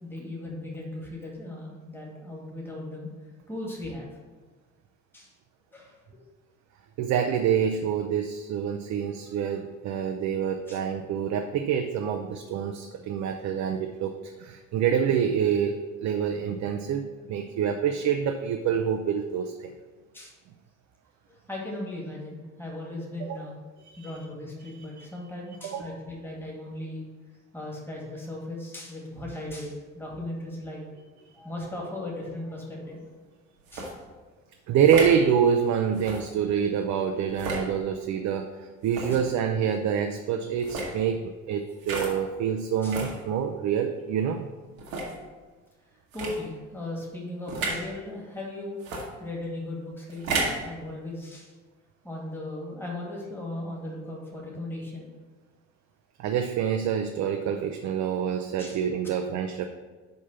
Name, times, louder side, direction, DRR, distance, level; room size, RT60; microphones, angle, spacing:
voice 1, 0.0-3.1 3.5-4.1 5.1-5.3 5.7-5.9 10.7-10.8 20.1-20.3 21.3-23.5 24.0-27.0 27.5-30.8 31.3-33.1 33.7-33.9 42.8-43.0 46.1-48.8 49.2-51.5 52.0-55.1 58.6-59.1, left 1 dB, 5° left, -2 dB, 2.0 m, -37 dB
voice 2, 7.0-19.7 23.2-23.4 23.9-24.1 25.6-25.9 34.7-44.5 56.2-59.6, right 8 dB, 45° right, 5 dB, 0.5 m, -26 dB
sound 1, 33.7-33.9 34.8-35.2 36.0-36.2 37.3-37.7 38.8-39.2 40.6-40.9 41.8-42.1 42.9-43.1 43.8-43.9 44.8-45.1 46.1-46.4 47.5-47.8 48.8-49.1 50.1-50.6, right 3 dB, 80° right, 1.2 m, -32 dB
5.3 x 5.2 x 5.6 m, 1.3 s
figure-of-eight pair, 50°, 40 cm